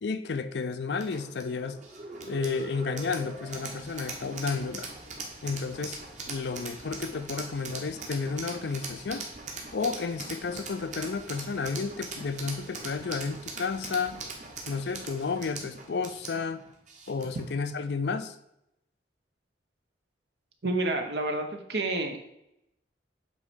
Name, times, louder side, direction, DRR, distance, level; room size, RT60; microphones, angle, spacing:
voice 1, 0.0-1.8 2.3-4.9 5.4-6.0 6.2-9.2 9.7-14.2 14.7-16.6 17.1-18.4, left 4 dB, 70° left, 11 dB, 0.5 m, -32 dB
sound 1, 1.0-17.5, right 3 dB, 40° right, 1.3 m, -41 dB
voice 2, 20.6-22.2, right 2 dB, 70° right, 5 dB, 1.0 m, -29 dB
8.1 x 3.2 x 5.1 m, 0.81 s
head